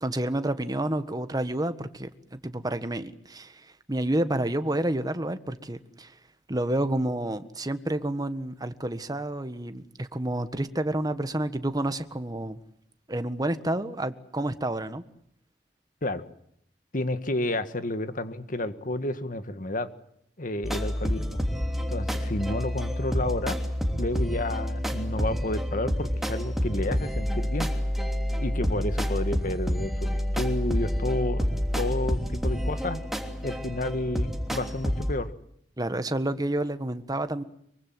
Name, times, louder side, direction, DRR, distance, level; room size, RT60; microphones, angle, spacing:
voice 1, 0.0-6.1 6.5-12.6 13.1-15.0 35.8-37.4, right 1 dB, 20° right, 10 dB, 1.5 m, -29 dB
voice 2, 16.9-19.9 20.4-21.4 21.9-23.6 24.0-27.7 28.4-33.0 33.4-35.3, left 1 dB, 50° left, 10 dB, 1.9 m, -31 dB
sound 1, 20.6-35.2, equal, ahead, 3.2 m, -28 dB
24.5 x 24.0 x 7.8 m, 0.70 s
head